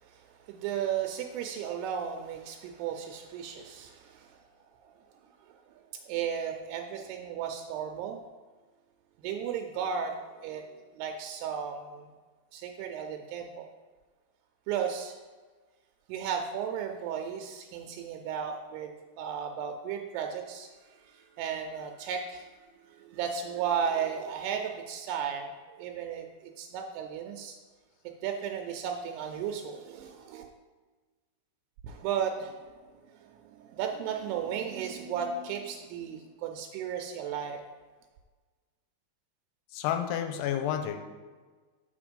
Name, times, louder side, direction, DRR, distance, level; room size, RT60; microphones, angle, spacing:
voice 1, 0.0-4.4 4.8-4.9 5.7-8.2 9.2-10.7 10.9-12.1 12.5-13.7 14.7-15.1 16.1-18.9 19.2-22.5 22.9-26.3 26.6-27.6 28.0-30.4 31.8-32.7 33.1-37.6, right 7 dB, 85° right, 4 dB, 2.6 m, -35 dB
voice 2, 39.7-41.0, left 9 dB, 90° left, 7 dB, 2.7 m, -30 dB
7.3 x 5.0 x 5.2 m, 1.4 s
omnidirectional pair, 4.7 m